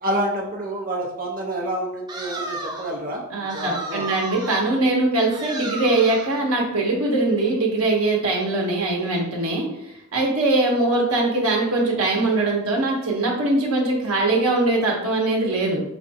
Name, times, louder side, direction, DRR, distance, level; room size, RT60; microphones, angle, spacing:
voice 1, 0.0-4.1, right 1 dB, 40° right, -2 dB, 0.7 m, -28 dB
sound 1, 2.1-3.0 3.5-4.7 5.3-6.4, right 2 dB, 20° right, 0.3 m, -33 dB
voice 2, 3.3-9.7 10.1-15.8, right 2 dB, 85° right, -1 dB, 0.8 m, -21 dB
4.9 x 2.3 x 2.6 m, 0.82 s
head